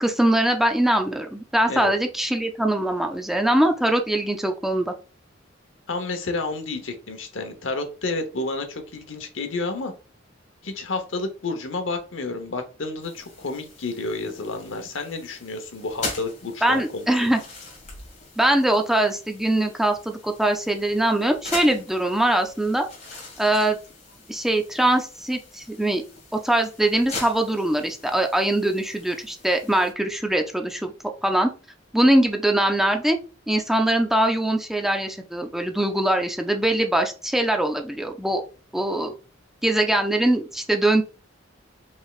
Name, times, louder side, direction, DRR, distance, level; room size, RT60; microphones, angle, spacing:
voice 1, 0.0-4.9 16.6-17.4 18.4-22.9 23.4-23.8 24.3-26.0 26.4-30.9 31.2-31.5 31.9-33.2 33.5-38.4 38.7-39.1 39.6-41.0, right 1 dB, ahead, 4 dB, 0.5 m, -22 dB
voice 2, 5.9-9.9 10.6-17.3, left 3 dB, 75° left, 7 dB, 0.9 m, -30 dB
sound 1, 13.0-29.9, left 3 dB, 40° left, 1.8 m, -41 dB
5.3 x 3.3 x 2.4 m, 0.34 s
head